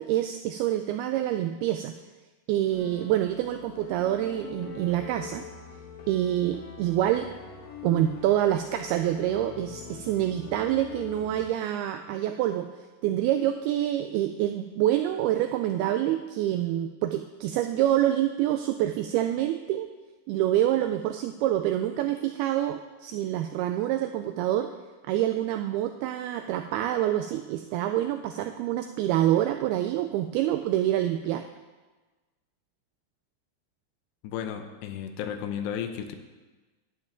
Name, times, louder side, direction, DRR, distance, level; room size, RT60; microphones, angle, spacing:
voice 1, 0.0-1.9 2.5-5.5 6.1-7.3 7.8-12.7 13.0-19.9 20.3-24.7 25.1-31.5, right 12 dB, 90° right, 7 dB, 2.2 m, -26 dB
sound 1, 2.7-11.5, left 7 dB, 60° left, 1.9 m, -43 dB
voice 2, 34.2-36.2, left 8 dB, 80° left, 7 dB, 2.8 m, -33 dB
11.5 x 5.9 x 8.9 m, 1.2 s
omnidirectional pair, 5.0 m